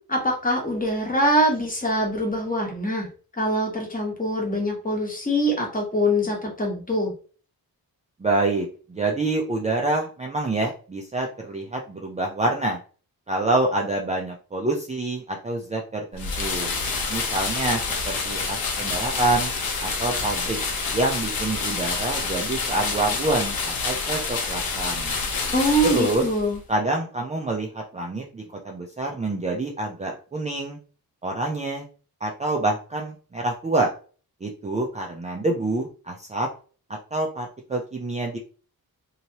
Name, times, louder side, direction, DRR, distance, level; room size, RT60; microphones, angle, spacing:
voice 1, 0.1-3.1 3.4-7.1 25.5-26.6, equal, 20° left, 0 dB, 1.0 m, -23 dB
voice 2, 8.2-12.8 13.3-16.7 17.1-19.5 19.8-20.6 20.9-25.2 25.8-26.3 26.7-30.8 31.2-31.9 32.2-33.9 34.4-36.5 37.1-38.4, right 2 dB, 20° right, -1 dB, 0.4 m, -27 dB
sound 1, 16.1-26.6, left 4 dB, 70° left, 0.9 m, -28 dB
3.0 x 2.8 x 2.7 m, 0.38 s
wide cardioid pair, 145°, 37 cm